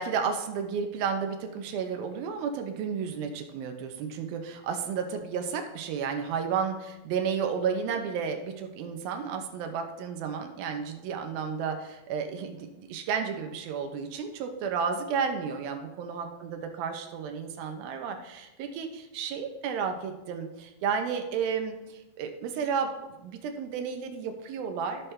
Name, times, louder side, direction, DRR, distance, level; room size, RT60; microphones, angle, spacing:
voice 1, 0.0-22.9 23.2-25.1, right 6 dB, 80° right, 5 dB, 2.7 m, -32 dB
13.5 x 6.1 x 3.3 m, 1.0 s
omnidirectional pair, 4.3 m